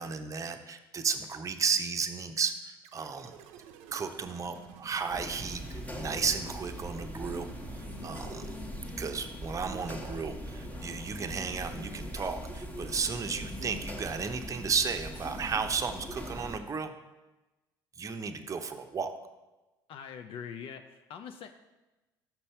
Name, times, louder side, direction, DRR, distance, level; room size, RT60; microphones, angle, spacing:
voice 1, 0.0-3.3 3.9-8.5 9.0-16.9 18.0-19.1, right 5 dB, 30° right, 6 dB, 0.7 m, -34 dB
sound 1, 2.8-9.3, right 8 dB, 65° right, 0.6 m, -53 dB
sound 2, 5.1-16.6, equal, 15° left, 1.2 m, -41 dB
voice 2, 19.9-21.5, left 7 dB, 50° left, 6 dB, 0.5 m, -43 dB
6.0 x 5.4 x 4.4 m, 1.1 s
hypercardioid pair, 65°, 12 cm